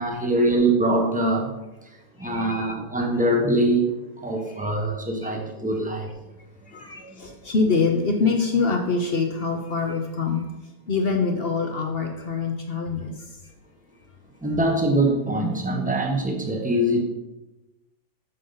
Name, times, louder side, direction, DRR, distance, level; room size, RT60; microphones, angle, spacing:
voice 1, 0.0-1.5 1.8-4.0 4.2-6.1 7.0-7.3 14.4-17.0, right 1 dB, 5° right, 2 dB, 0.6 m, -23 dB
voice 2, 2.2-2.7 4.6-4.7 5.2-5.3 6.7-10.4 10.9-13.4, left 4 dB, 60° left, 3 dB, 0.6 m, -25 dB
9.2 x 6.8 x 3.9 m, 1.0 s
omnidirectional pair, 2.1 m